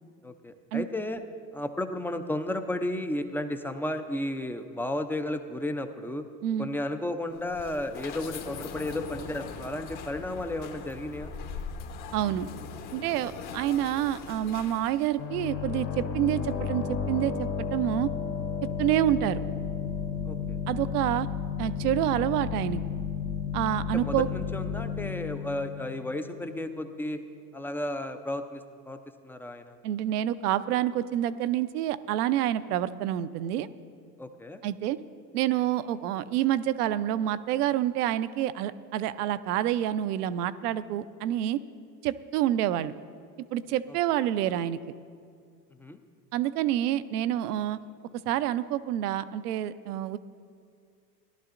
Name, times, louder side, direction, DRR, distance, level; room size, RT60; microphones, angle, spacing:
voice 1, 0.2-1.2 1.5-6.2 6.6-11.3 20.2-20.6 23.9-27.2 27.5-29.8 34.2-34.6 45.8-46.0, left 1 dB, 5° left, 8 dB, 0.4 m, -33 dB
sound 1, 7.3-15.2, left 5 dB, 50° left, 1.2 m, -41 dB
voice 2, 12.1-12.5 12.9-18.1 18.6-19.4 20.7-21.3 21.6-22.8 23.5-24.3 29.8-33.7 34.6-35.0 35.3-41.6 42.0-42.9 43.5-44.8 46.3-47.8 48.3-50.2, right 12 dB, 65° right, 14 dB, 0.6 m, -28 dB
sound 2, 15.2-26.7, left 7 dB, 65° left, 2.5 m, -33 dB
18.0 x 11.5 x 2.5 m, 2.2 s
figure-of-eight pair, 75°, 50 cm